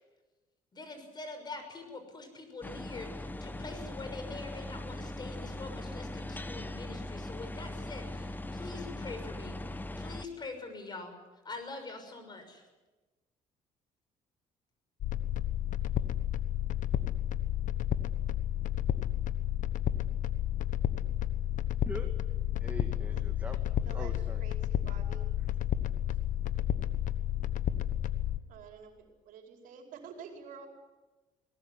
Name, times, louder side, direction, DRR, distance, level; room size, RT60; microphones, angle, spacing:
voice 1, 0.7-11.2 11.4-12.6, left 3 dB, 30° left, 7 dB, 6.1 m, -44 dB
sound 1, 2.6-10.3, left 1 dB, 15° left, 1.0 m, -40 dB
sound 2, 15.0-28.4, left 11 dB, 65° left, 1.2 m, -31 dB
voice 2, 22.6-24.4 25.4-25.5, right 2 dB, 10° right, 4 dB, 2.1 m, -43 dB
voice 3, 24.4-25.3 28.5-28.9 29.2-30.7, right 6 dB, 75° right, 3 dB, 4.9 m, -48 dB
22.0 x 18.5 x 9.7 m, 1.2 s
cardioid pair, 105°, 14 cm